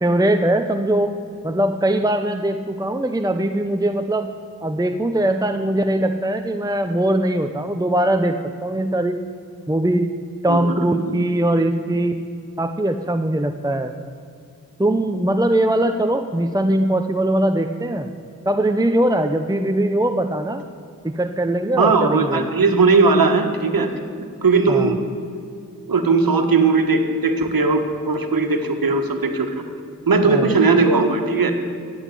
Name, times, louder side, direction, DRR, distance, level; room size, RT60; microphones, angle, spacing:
voice 1, 0.0-1.1 1.4-4.3 4.6-9.2 9.7-10.1 10.4-12.2 12.6-13.9 14.8-18.1 18.5-20.6 21.0-22.5 24.7-24.9 30.2-30.5, right 1 dB, 10° right, 6 dB, 0.8 m, -21 dB
voice 2, 10.5-11.3 21.8-23.9 24.4-25.1 25.9-29.6 30.1-31.5, right 4 dB, 80° right, 5 dB, 1.6 m, -18 dB
15.0 x 8.3 x 9.7 m, 2.5 s
cardioid pair, 45°, 34 cm